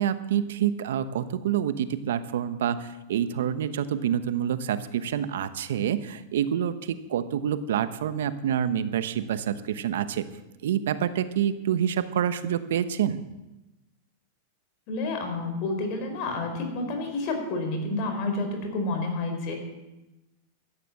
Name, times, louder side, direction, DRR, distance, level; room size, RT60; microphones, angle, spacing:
voice 1, 0.0-10.3 10.6-13.2, right 9 dB, 80° right, 13 dB, 0.9 m, -27 dB
voice 2, 14.9-19.5, left 2 dB, 50° left, 4 dB, 4.2 m, -29 dB
13.0 x 9.5 x 7.6 m, 1.0 s
hypercardioid pair, 125°, 0 cm